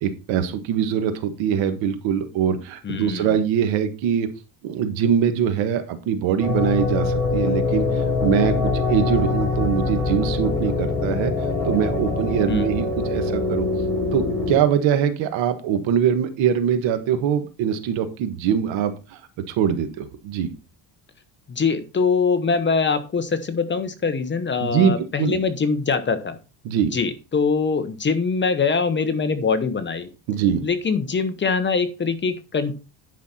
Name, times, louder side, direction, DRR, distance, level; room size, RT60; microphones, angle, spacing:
voice 1, 0.0-4.3 4.6-11.3 11.6-13.7 14.1-19.2 19.5-20.5 24.6-24.9 25.2-25.4 26.6-26.9 30.3-30.6, right 8 dB, 85° right, 9 dB, 1.6 m, -23 dB
voice 2, 2.8-3.4 12.5-12.7 21.5-26.4 26.9-30.1 30.6-32.8, left 5 dB, 25° left, 10 dB, 1.0 m, -23 dB
sound 1, 6.4-14.6, left 3 dB, 5° left, 5.1 m, -23 dB
10.0 x 5.8 x 4.3 m, 0.31 s
cardioid pair, 135°, 45 cm